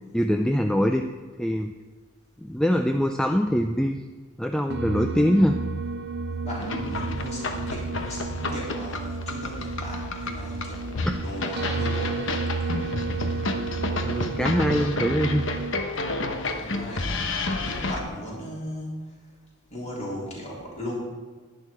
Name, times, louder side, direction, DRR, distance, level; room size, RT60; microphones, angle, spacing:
voice 1, 0.1-1.0 1.4-1.7 2.4-4.0 4.4-5.6 11.1-11.2 14.0-15.4, equal, 5° left, 5 dB, 0.3 m, -23 dB
sound 1, 4.7-15.8, right 3 dB, 50° right, 0.5 m, -32 dB
voice 2, 6.4-12.3 16.2-17.2 17.6-19.1 19.7-20.9, equal, 35° left, -5 dB, 3.9 m, -37 dB
sound 2, 6.6-18.0, left 3 dB, 60° left, 1.0 m, -31 dB
10.5 x 10.5 x 4.8 m, 1.4 s
head